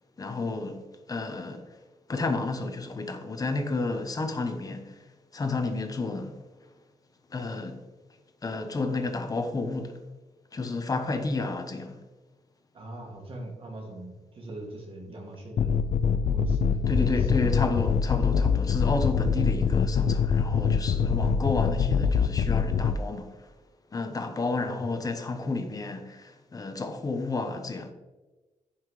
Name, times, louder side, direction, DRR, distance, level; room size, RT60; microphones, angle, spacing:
voice 1, 0.2-0.8 1.1-1.7 2.1-5.1 5.3-6.4 7.3-7.8 8.4-10.0 10.5-12.0 16.9-23.5 23.9-27.9, left 3 dB, 25° left, 0.9 m, -31 dB
voice 2, 12.7-17.5 24.6-24.9, right 1 dB, 40° right, 2.3 m, -42 dB
sound 1, 15.6-23.0, left 6 dB, 55° left, 0.4 m, -24 dB
14.0 x 5.7 x 3.2 m
wide cardioid pair, 165°, 14 cm